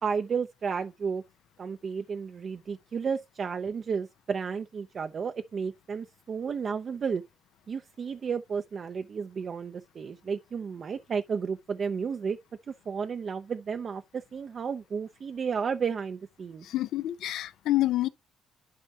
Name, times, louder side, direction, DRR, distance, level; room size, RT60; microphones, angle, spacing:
voice 1, 0.0-1.2 1.6-7.2 7.7-12.4 12.9-16.6, right 6 dB, 50° right, 0.6 m, -32 dB
voice 2, 16.6-18.1, left 15 dB, 80° left, 0.6 m, -27 dB
11.0 x 4.3 x 2.8 m
cardioid pair, 90°, 0 cm